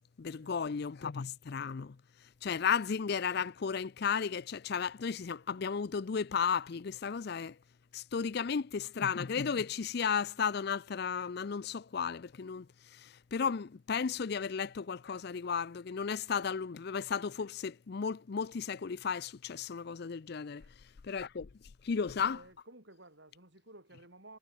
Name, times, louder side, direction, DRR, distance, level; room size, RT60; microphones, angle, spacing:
voice 1, 0.2-2.0 2.4-7.5 7.9-12.7 13.0-20.6 21.0-21.5 21.8-22.4, left 6 dB, 50° left, 0.4 m, -34 dB
voice 2, 22.0-24.4, right 2 dB, 55° right, 6.0 m, -55 dB
head